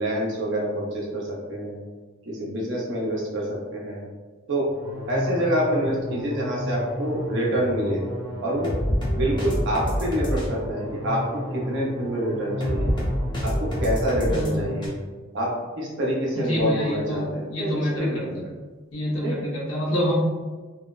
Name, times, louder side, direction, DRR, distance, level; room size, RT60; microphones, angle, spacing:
voice 1, 0.0-1.8 2.3-4.0 4.5-4.7 5.1-8.0 8.4-8.7 9.1-12.9 13.4-14.9 15.3-18.4 19.2-19.4, equal, 60° right, -4 dB, 0.7 m, -26 dB
sound 1, 4.7-14.9, equal, 25° left, 0.6 m, -29 dB
voice 2, 16.3-18.4 18.9-20.2, equal, 85° left, -6 dB, 0.8 m, -27 dB
2.7 x 2.0 x 2.4 m, 1.3 s
head